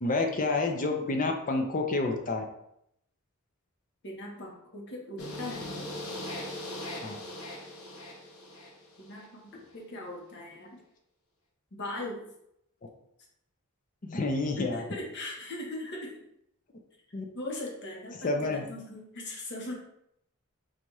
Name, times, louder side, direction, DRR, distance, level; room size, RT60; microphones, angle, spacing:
voice 1, 0.0-2.4 7.0-7.2 14.0-14.8 17.1-17.2 18.2-18.6, left 3 dB, 40° left, 4 dB, 0.6 m, -29 dB
voice 2, 4.0-5.8 9.0-10.8 11.7-12.3 14.7-16.2 17.3-19.7, left 1 dB, 55° left, -1 dB, 1.1 m, -39 dB
sound 1, 5.2-9.3, left 1 dB, 85° left, 0.9 m, -40 dB
4.1 x 2.4 x 4.7 m, 0.77 s
head